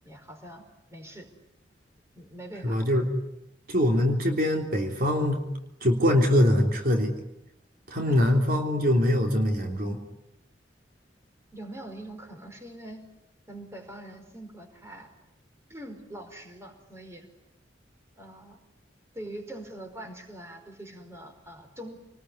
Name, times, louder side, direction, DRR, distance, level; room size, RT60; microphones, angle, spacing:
voice 1, 0.0-0.6 0.9-1.3 2.1-2.8 8.1-8.3 11.5-13.0 13.5-15.2 15.7-17.3 18.2-18.6 19.1-22.0, right 1 dB, 15° right, 5 dB, 5.0 m, -43 dB
voice 2, 2.6-3.1 3.7-5.5 5.8-7.1 7.9-10.0, left 1 dB, 55° right, 2 dB, 3.5 m, -23 dB
28.5 x 20.5 x 9.9 m, 0.89 s
head